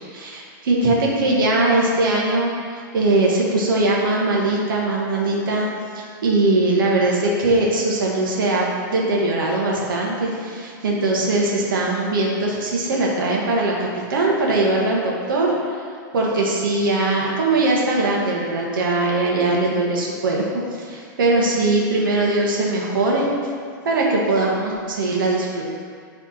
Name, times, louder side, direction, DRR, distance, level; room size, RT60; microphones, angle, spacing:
voice 1, 0.1-5.7 5.9-15.8 16.1-20.4 20.7-23.3 23.8-25.7, right 2 dB, 85° right, -3 dB, 1.4 m, -21 dB
9.9 x 3.5 x 4.3 m, 2.1 s
supercardioid pair, 165°, 11 cm